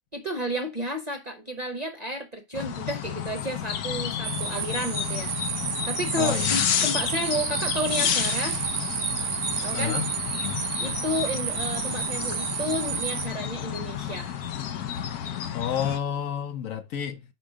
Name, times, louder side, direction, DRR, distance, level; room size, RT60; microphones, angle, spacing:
voice 1, 0.1-5.3 5.9-8.6 9.6-10.0 10.8-14.4, equal, 35° right, 0.7 m, -31 dB
sound 1, 2.5-16.0, left 9 dB, 90° left, 1.3 m, -31 dB
sound 2, 4.2-13.3, right 11 dB, 70° right, 0.9 m, -31 dB
voice 2, 6.2-6.7 9.7-10.1 10.4-10.7 15.5-17.2, left 9 dB, 65° left, 1.1 m, -30 dB
5.0 x 4.7 x 4.9 m
omnidirectional pair, 1.6 m